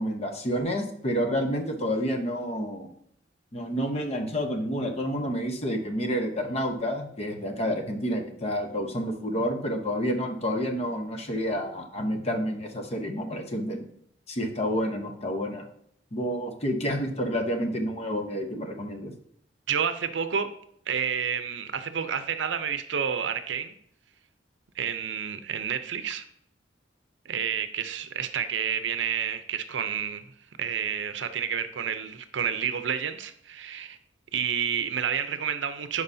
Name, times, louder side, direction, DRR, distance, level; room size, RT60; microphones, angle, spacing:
voice 1, 0.0-2.9 3.5-13.9 14.3-15.6 16.1-19.1, equal, 35° left, 4 dB, 0.9 m, -29 dB
voice 2, 19.7-20.5 20.9-23.7 24.8-26.2 27.3-30.2 30.6-34.0 34.3-36.0, right 7 dB, 75° right, 10 dB, 0.6 m, -29 dB
11.0 x 4.8 x 2.7 m, 0.69 s
head